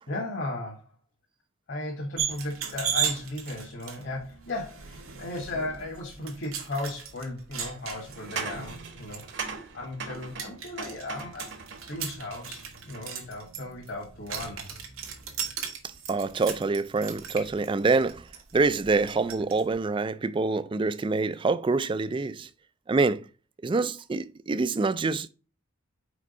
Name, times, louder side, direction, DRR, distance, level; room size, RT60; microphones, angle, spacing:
voice 1, 0.1-0.9 1.7-9.5 9.7-11.5 11.9-14.7, left 2 dB, 55° left, 1.7 m, -36 dB
sound 1, 2.2-19.6, right 7 dB, 85° right, 1.4 m, -37 dB
sound 2, 6.6-6.7 8.1-12.0 12.4-13.2, right 5 dB, 60° right, 1.1 m, -39 dB
voice 2, 16.1-18.2 18.5-22.5 22.9-23.2 23.6-25.3, right 3 dB, 25° right, 0.3 m, -26 dB
5.0 x 4.6 x 5.3 m
head